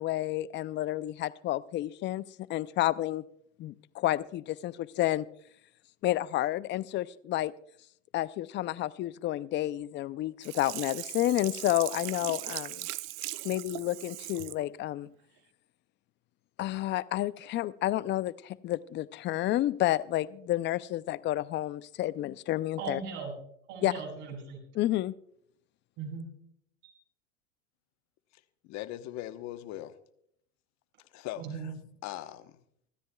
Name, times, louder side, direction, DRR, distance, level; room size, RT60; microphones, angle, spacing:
voice 1, 0.0-3.2 3.6-5.3 6.0-7.5 8.1-12.9 13.4-15.1 16.6-23.0 23.8-23.9 24.7-25.1, left 15 dB, 30° left, 18 dB, 0.5 m, -30 dB
Sink (filling or washing), 10.4-14.6 15.1-15.2, right 18 dB, 40° right, 0.5 m, -39 dB
voice 2, 22.8-23.3 23.7-24.6 26.0-26.3 26.8-26.9 31.4-31.7, right 5 dB, 60° right, 0 dB, 6.5 m, -38 dB
voice 3, 28.6-29.9 31.1-32.5, left 14 dB, 45° left, 11 dB, 1.1 m, -40 dB
25.5 x 13.0 x 2.3 m, 0.70 s
hypercardioid pair, 100°, 38 cm